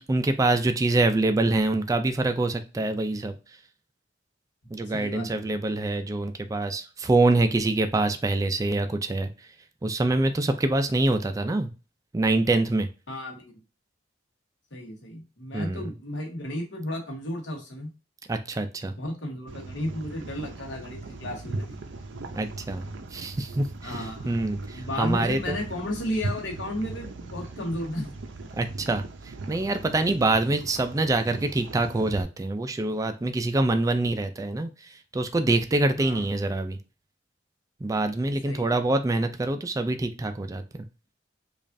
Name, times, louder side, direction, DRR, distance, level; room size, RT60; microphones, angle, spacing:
voice 1, 0.0-3.3 4.7-9.3 9.8-11.7 12.1-12.9 15.5-15.9 18.3-18.9 22.3-22.9 23.1-23.7 23.9-25.6 28.6-29.0 29.5-34.7 35.1-36.8 37.8-40.6, right 2 dB, 20° right, 7 dB, 0.3 m, -25 dB
voice 2, 4.6-5.5 13.1-13.6 14.7-17.9 19.0-21.8 23.8-24.4 24.7-28.1 30.2-30.3 35.9-36.3 38.4-38.7, left 1 dB, 75° left, 1 dB, 1.2 m, -34 dB
sound 1, 19.5-32.2, right 3 dB, 85° right, 0.6 m, -38 dB
5.1 x 2.4 x 2.6 m, 0.32 s
head